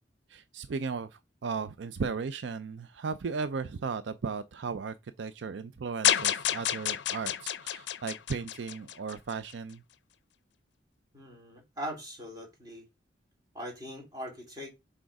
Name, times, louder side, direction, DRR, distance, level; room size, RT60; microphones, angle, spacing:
voice 1, 0.3-9.8, right 5 dB, 80° right, 0.5 m, -36 dB
sound 1, 6.0-9.3, left 11 dB, 70° left, 0.5 m, -29 dB
voice 2, 11.1-12.8 13.5-14.7, equal, 20° right, 2.8 m, -41 dB
6.3 x 3.8 x 4.7 m
head